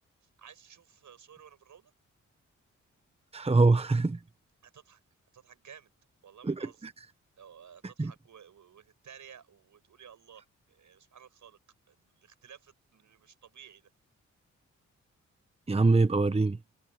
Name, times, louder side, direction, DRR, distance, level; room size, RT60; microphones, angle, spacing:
voice 1, 0.2-1.9 4.6-5.0 5.3-5.9 6.2-6.9 7.4-11.6 11.9-13.9, right 8 dB, 70° right, 7.2 m, -54 dB
voice 2, 3.3-4.2 6.4-6.9 8.0-8.1 15.7-16.6, right 3 dB, 20° right, 1.1 m, -24 dB
supercardioid pair, 50°, 31 cm